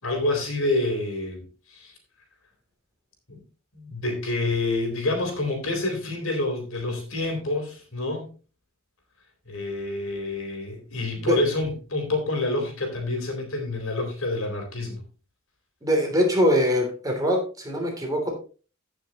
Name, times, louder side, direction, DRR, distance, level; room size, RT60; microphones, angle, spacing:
voice 1, 0.0-1.4 1.7-1.9 3.3-3.4 3.7-8.3 9.5-15.0, left 2 dB, 75° left, 3 dB, 3.8 m, -27 dB
voice 2, 15.8-18.3, equal, 15° right, 1 dB, 3.0 m, -23 dB
15.5 x 6.6 x 3.0 m, 0.36 s
head